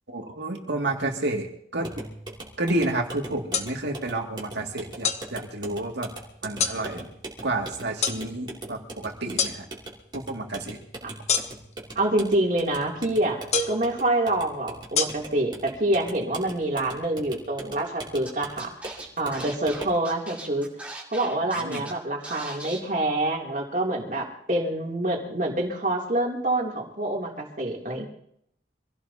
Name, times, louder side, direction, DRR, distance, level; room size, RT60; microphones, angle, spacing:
voice 1, 0.1-1.9 2.6-6.1 6.4-7.1 7.4-9.6 10.1-10.8 21.6-21.8, right 2 dB, 90° right, 1 dB, 2.5 m, -30 dB
sound 1, 1.8-20.0, right 2 dB, 25° right, 2.9 m, -41 dB
sound 2, 3.5-3.7 5.0-5.2 6.6-6.8 8.0-8.2 9.4-9.6 11.3-11.7 13.5-13.8 15.0-15.1, left 6 dB, 40° left, 1.1 m, -24 dB
voice 2, 11.9-18.7 19.2-20.7 21.1-28.1, right 1 dB, 45° right, 0 dB, 3.1 m, -26 dB
Scratching (performance technique), 18.3-18.4 18.6-21.9 22.2-22.8, right 2 dB, 10° right, 2.3 m, -39 dB
26.0 x 16.5 x 2.9 m, 0.71 s
head